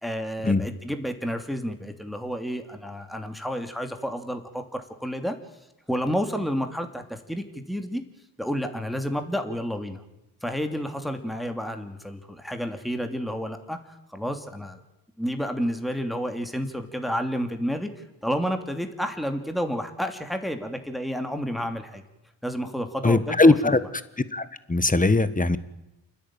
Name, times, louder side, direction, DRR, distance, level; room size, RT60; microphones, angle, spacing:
voice 1, 0.0-5.4 5.9-8.0 8.4-10.0 10.4-14.8 15.2-22.0 22.4-23.8, equal, ahead, 6 dB, 2.9 m, -30 dB
voice 2, 23.0-23.8 24.3-25.6, left 2 dB, 15° left, 14 dB, 1.6 m, -20 dB
29.0 x 10.5 x 9.1 m, 0.94 s
supercardioid pair, 45°, 48 cm